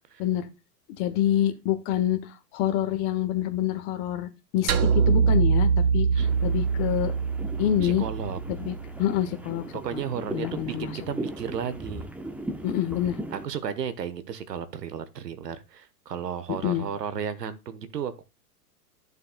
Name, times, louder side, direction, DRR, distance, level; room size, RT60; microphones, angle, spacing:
voice 1, 1.0-7.1 7.6-8.0 8.5-9.6 9.9-10.0 10.3-11.0 12.6-13.2 16.6-16.9, left 11 dB, 40° left, 1.5 m, -27 dB
sound 1, 4.7-9.1, right 6 dB, 65° right, 1.5 m, -24 dB
sound 2, 6.2-13.4, right 1 dB, 5° right, 0.8 m, -38 dB
voice 2, 7.8-8.4 9.7-12.1 13.3-18.2, right 7 dB, 80° right, 1.3 m, -33 dB
11.0 x 6.8 x 2.2 m
hypercardioid pair, 115°, 48 cm